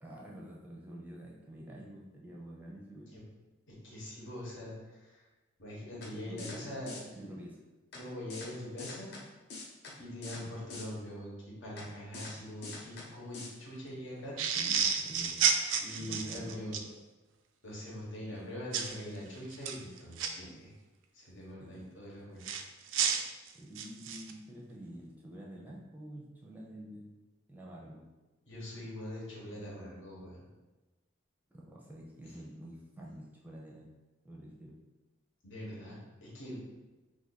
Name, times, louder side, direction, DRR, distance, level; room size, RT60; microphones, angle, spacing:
voice 1, 0.0-3.1 6.2-7.6 14.6-15.5 16.0-16.7 21.6-21.8 23.5-27.2 27.5-28.0 31.5-33.9 34.2-34.7, right 1 dB, 10° right, -4 dB, 0.5 m, -48 dB
voice 2, 3.7-5.2 5.6-7.3 7.9-9.1 10.0-14.4 15.8-16.8 17.6-20.7 21.1-22.5 28.5-30.4 35.4-36.6, left 1 dB, 80° left, -5 dB, 1.1 m, -43 dB
sound 1, 6.0-6.1 6.4-6.6 6.9-7.0 7.9-8.0 8.3-8.5 8.8-9.2 9.5-9.9 10.2-10.4 10.7-10.8 11.8-11.9 12.1-12.3 12.6-13.0 13.3-13.5, left 3 dB, 55° left, 0.6 m, -44 dB
sound 2, 14.4-16.9 18.7-18.9 19.5-20.3 22.4-24.3, right 7 dB, 80° right, 0.3 m, -31 dB
2.6 x 2.5 x 4.0 m, 1.1 s
head